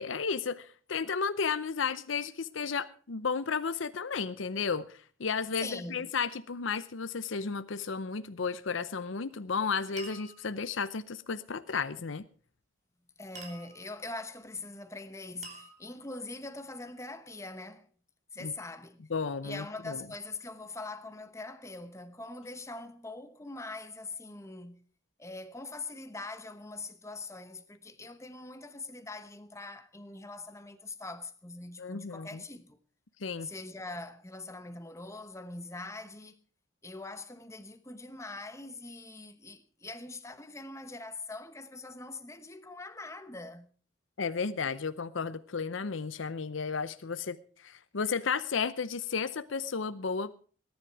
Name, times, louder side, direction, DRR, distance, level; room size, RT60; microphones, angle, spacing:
voice 1, 0.0-12.2 18.4-18.5 19.1-20.0 31.8-32.4 33.2-33.5 44.2-50.3, left 5 dB, 75° left, 0.7 m, -33 dB
voice 2, 5.6-6.1 13.2-17.9 18.3-19.0 19.4-24.8 25.2-32.8 33.4-36.4 36.8-43.7, left 2 dB, 15° left, 1.1 m, -43 dB
sound 1, 8.9-9.3 10.0-10.7 13.3-14.1 15.4-16.3, right 3 dB, 40° right, 3.0 m, -49 dB
19.0 x 10.5 x 4.7 m
head